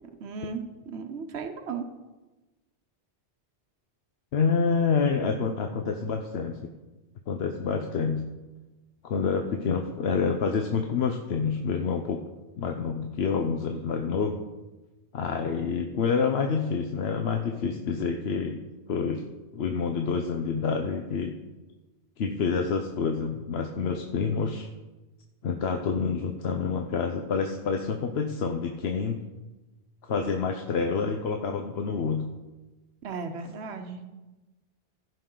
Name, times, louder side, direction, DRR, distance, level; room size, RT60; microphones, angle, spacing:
voice 1, 0.2-1.8 33.0-34.0, right 5 dB, 75° right, 6 dB, 1.1 m, -36 dB
voice 2, 4.3-6.6 7.3-8.2 9.0-12.2 12.6-14.4 15.1-18.6 18.9-19.2 19.5-21.4 22.2-24.7 25.4-29.2 30.1-32.3, left 5 dB, 70° left, 4 dB, 0.9 m, -27 dB
15.5 x 5.4 x 3.8 m, 1.1 s
omnidirectional pair, 1.1 m